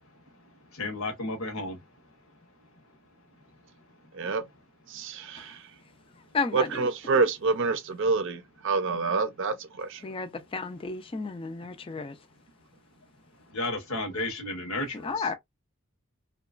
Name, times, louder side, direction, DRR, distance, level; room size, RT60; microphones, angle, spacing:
voice 1, 0.8-1.8 13.5-15.3, left 2 dB, 65° left, 0.9 m, -32 dB
voice 2, 4.9-5.7 6.5-10.0, right 4 dB, 60° right, 0.5 m, -27 dB
voice 3, 6.3-6.7 10.0-12.2 15.0-15.4, left 4 dB, 25° left, 0.4 m, -32 dB
2.9 x 2.3 x 2.3 m
head